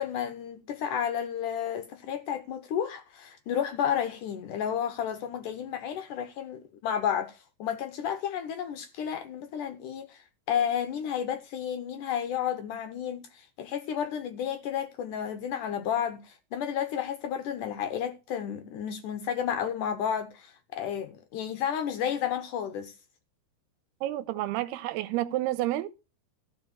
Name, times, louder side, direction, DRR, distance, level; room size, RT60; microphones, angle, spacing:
voice 1, 0.0-22.9, left 9 dB, 75° left, 2.0 m, -32 dB
voice 2, 24.0-25.9, right 15 dB, 85° right, 2.8 m, -30 dB
14.5 x 5.0 x 7.1 m
omnidirectional pair, 4.5 m